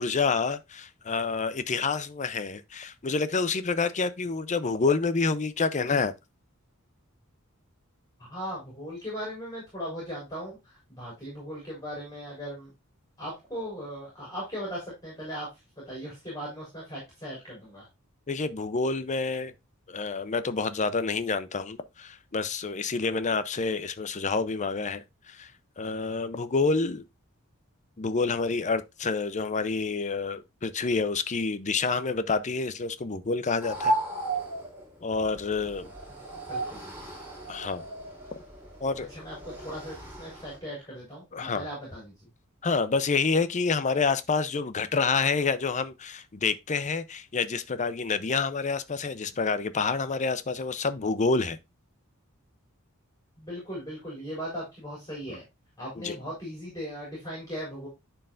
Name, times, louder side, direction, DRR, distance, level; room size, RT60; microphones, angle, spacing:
voice 1, 0.0-6.1 18.3-19.5 19.9-25.5 25.8-27.0 28.0-34.0 35.0-35.9 37.5-37.8 38.8-39.1 41.3-41.6 42.6-51.6 56.0-56.2, left 4 dB, 35° left, 0.6 m, -28 dB
voice 2, 8.3-12.7 13.2-15.5 15.8-17.9 36.1-36.2 36.5-36.9 39.1-42.1 53.4-55.4 55.8-57.9, equal, 15° left, 4.3 m, -38 dB
sound 1, 33.6-40.6, right 2 dB, 10° right, 3.8 m, -35 dB
11.0 x 4.7 x 2.5 m
head